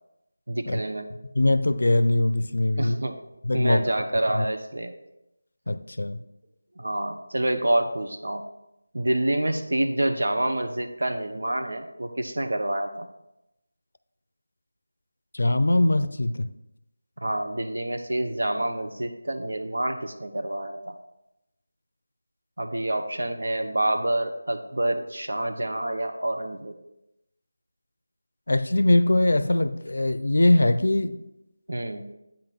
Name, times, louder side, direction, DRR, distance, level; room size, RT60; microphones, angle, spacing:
voice 1, 0.5-1.1 2.8-3.2 3.5-4.9 6.8-8.4 8.9-13.1 17.2-21.0 22.6-26.7 31.7-32.1, right 1 dB, 80° right, 6 dB, 0.8 m, -27 dB
voice 2, 1.4-3.0 3.4-3.9 4.3-4.5 5.7-6.2 15.3-16.5 28.5-31.2, left 1 dB, 65° left, 13 dB, 0.5 m, -22 dB
8.7 x 3.9 x 5.7 m, 0.89 s
figure-of-eight pair, 180°, 0 cm